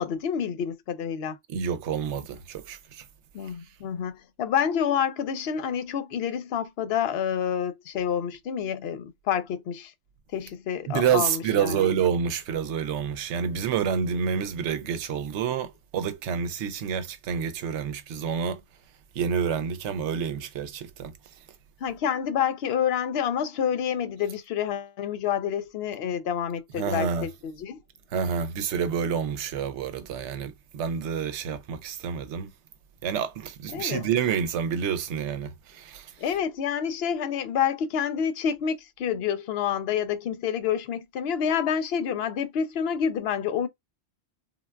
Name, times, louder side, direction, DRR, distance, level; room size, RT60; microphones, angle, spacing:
voice 1, 0.0-1.4 3.3-9.9 10.3-11.9 21.8-27.8 33.7-34.1 36.2-43.7, left 8 dB, 65° left, 0.7 m, -28 dB
voice 2, 1.5-3.0 10.9-18.6 19.2-21.1 26.8-27.3 28.1-32.5 33.0-36.4, right 7 dB, 80° right, 0.9 m, -28 dB
3.7 x 2.2 x 2.2 m
omnidirectional pair, 1.2 m